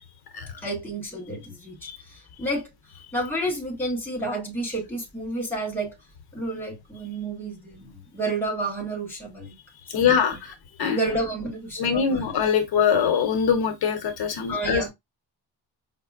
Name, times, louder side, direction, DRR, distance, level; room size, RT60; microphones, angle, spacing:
voice 1, 0.6-2.7 3.1-6.0 6.3-9.5 9.9-10.1 10.9-12.3 14.5-14.9, right 2 dB, 5° left, 1.0 m, -30 dB
voice 2, 9.9-10.5 10.8-11.1 11.8-14.9, left 7 dB, 60° left, 0.7 m, -23 dB
5.0 x 2.0 x 2.4 m
cardioid pair, 160°, 43 cm